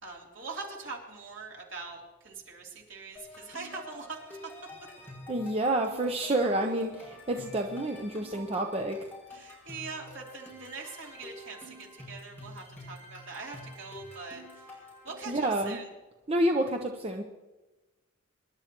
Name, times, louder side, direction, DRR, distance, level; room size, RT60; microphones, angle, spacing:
voice 1, 0.0-4.5 9.3-14.6 15.0-15.9, right 4 dB, 60° right, -2 dB, 3.2 m, -43 dB
sound 1, 3.2-15.5, left 1 dB, 10° left, 6.3 m, -48 dB
voice 2, 5.3-9.0 15.3-15.8 16.3-17.2, right 1 dB, 30° right, 3 dB, 0.8 m, -29 dB
25.5 x 11.5 x 3.0 m, 1.1 s
head